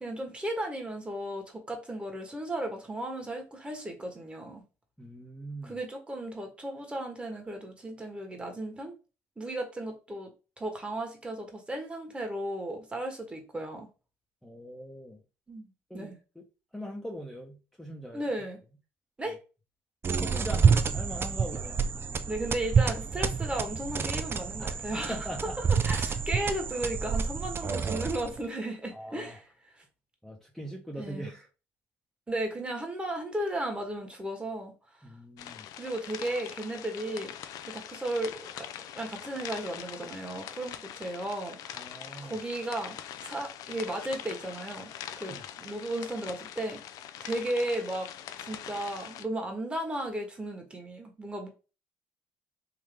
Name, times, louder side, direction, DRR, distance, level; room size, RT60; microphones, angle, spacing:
voice 1, 0.0-4.6 5.6-8.9 9.4-10.3 10.6-13.9 15.5-16.2 18.1-18.6 19.2-19.4 22.2-25.3 25.8-29.4 31.0-31.3 32.3-34.7 35.8-37.3 37.6-38.7 39.0-41.9 42.2-43.0 43.2-44.9 45.2-46.8 47.2-48.1 48.5-51.5, right 1 dB, 15° right, 1.4 m, -35 dB
voice 2, 5.0-5.8 14.4-15.2 15.9-16.4 16.7-18.2 20.1-21.9 24.6-25.5 28.9-29.3 30.2-31.5 35.0-35.7 41.7-42.4 45.3-45.4, equal, 5° left, 0.9 m, -41 dB
sound 1, 20.0-28.5, right 6 dB, 35° right, 0.5 m, -28 dB
sound 2, 35.4-49.2, left 10 dB, 70° left, 0.4 m, -43 dB
3.7 x 2.7 x 3.4 m
supercardioid pair, 65°, 7 cm